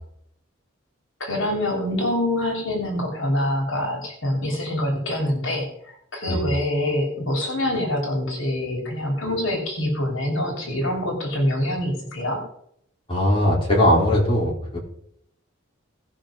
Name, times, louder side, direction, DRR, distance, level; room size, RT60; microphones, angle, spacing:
voice 1, 1.2-12.4, left 1 dB, 70° left, 1 dB, 3.3 m, -25 dB
voice 2, 13.1-14.8, left 1 dB, 25° left, -4 dB, 4.4 m, -19 dB
18.0 x 6.4 x 5.1 m, 0.71 s
head